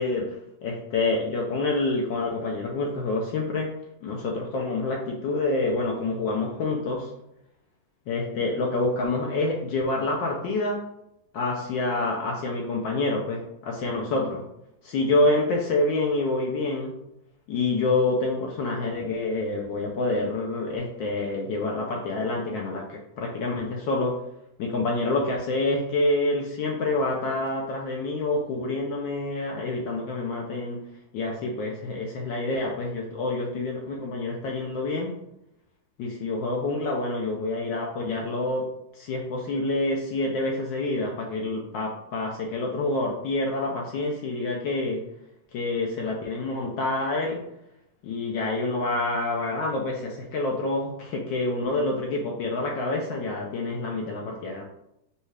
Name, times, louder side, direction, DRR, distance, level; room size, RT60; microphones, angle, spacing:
voice 1, 0.0-3.7 4.0-7.1 8.1-10.8 11.3-14.4 14.8-16.9 17.5-24.2 24.6-30.8 31.1-35.1 36.0-38.7 38.9-45.0 45.5-47.4 48.0-54.6, left 2 dB, 75° left, -1 dB, 1.3 m, -27 dB
5.3 x 2.4 x 3.2 m, 0.82 s
omnidirectional pair, 2.2 m